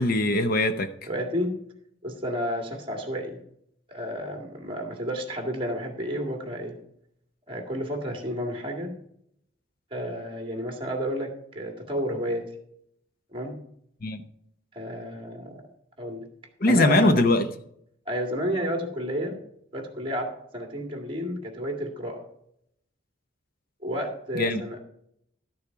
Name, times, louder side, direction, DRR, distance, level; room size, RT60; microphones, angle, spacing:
voice 1, 0.0-0.9 14.0-14.2 16.6-17.5 24.3-24.6, left 2 dB, 50° left, 10 dB, 0.7 m, -21 dB
voice 2, 1.1-1.6 2.0-3.4 3.9-6.8 7.5-8.9 9.9-12.5 13.3-13.6 14.7-15.6 16.0-16.3 16.7-17.1 18.1-19.4 19.7-22.2 23.8-24.8, equal, 30° right, 2 dB, 2.1 m, -31 dB
13.0 x 6.8 x 4.7 m, 0.73 s
head